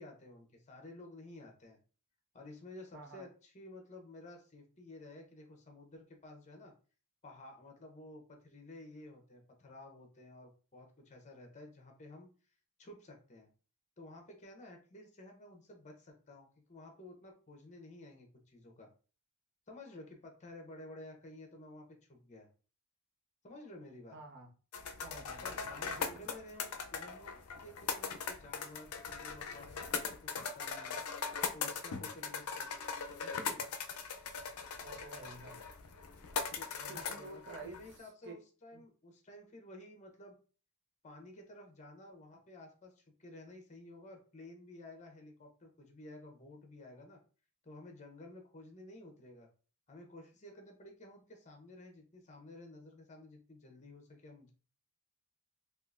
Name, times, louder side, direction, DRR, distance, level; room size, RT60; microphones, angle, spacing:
voice 1, 0.0-1.8 2.3-6.7 7.2-12.3 12.8-13.5 14.0-18.9 19.7-22.5 23.4-24.2 25.4-27.3 27.6-31.0 31.5-32.7 33.2-33.6 36.5-40.3 41.0-47.2 47.6-49.5 49.9-54.5, left 2 dB, 35° left, 2 dB, 0.7 m, -53 dB
voice 2, 2.9-3.3 24.1-24.5 25.0-26.2 34.8-35.7 36.9-37.8 38.2-38.3 38.7-38.8, right 3 dB, 55° right, 1 dB, 0.7 m, -50 dB
sound 1, 24.7-38.0, left 5 dB, 85° left, 0.4 m, -40 dB
3.6 x 2.4 x 2.4 m, 0.37 s
head